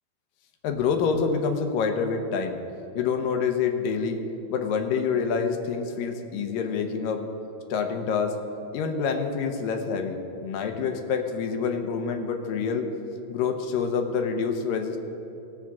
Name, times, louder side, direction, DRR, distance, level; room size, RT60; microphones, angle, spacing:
voice 1, 0.6-2.6 2.9-7.2 7.7-8.4 8.7-12.9 13.3-15.0, left 5 dB, 85° left, 5 dB, 2.5 m, -27 dB
20.5 x 7.5 x 3.6 m, 3.0 s
omnidirectional pair, 3.9 m